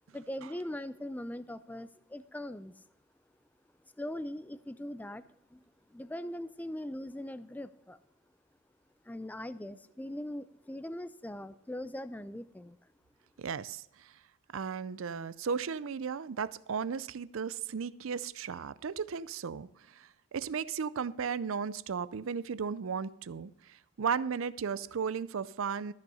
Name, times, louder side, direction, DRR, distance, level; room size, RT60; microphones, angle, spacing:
voice 1, 0.1-2.9 3.9-8.0 9.0-12.9, left 1 dB, 10° left, 0.3 m, -41 dB
voice 2, 13.4-14.2 14.5-25.9, right 6 dB, 70° right, 0.5 m, -35 dB
13.5 x 6.4 x 5.5 m
head